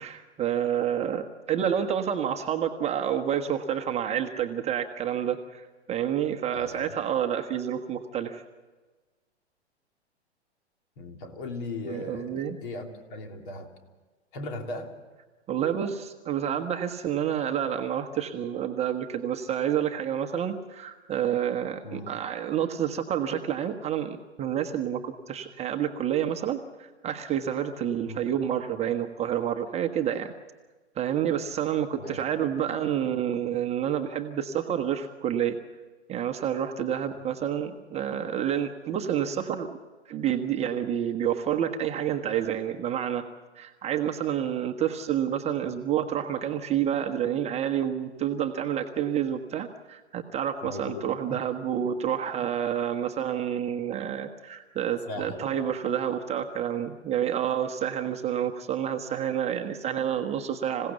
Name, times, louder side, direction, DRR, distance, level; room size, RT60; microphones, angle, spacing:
voice 1, 0.0-8.4 11.9-12.6 15.5-30.3 30.9-35.6 36.1-39.7 40.1-43.2 43.6-60.9, right 9 dB, 20° right, 5 dB, 1.1 m, -29 dB
voice 2, 6.5-6.9 11.0-13.7 14.3-14.9 21.8-22.1 28.1-28.2 32.0-32.2 50.6-51.4 55.1-55.7, left 2 dB, 50° left, 3 dB, 3.2 m, -38 dB
27.0 x 16.5 x 7.1 m, 1.3 s
figure-of-eight pair, 105°, 34 cm